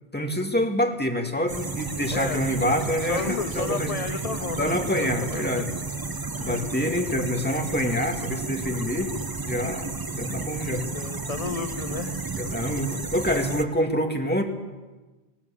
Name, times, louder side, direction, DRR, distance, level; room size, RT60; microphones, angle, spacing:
voice 1, 0.1-3.9 4.6-5.7 6.4-9.1 9.4-10.9 12.3-14.4, equal, 10° left, 2 dB, 2.3 m, -26 dB
sound 1, 1.5-13.6, right 3 dB, 25° right, 0.8 m, -32 dB
voice 2, 2.1-5.6 6.0-6.6 10.9-12.2, left 5 dB, 40° left, 8 dB, 0.9 m, -33 dB
20.5 x 17.5 x 8.7 m, 1.2 s
omnidirectional pair, 1.1 m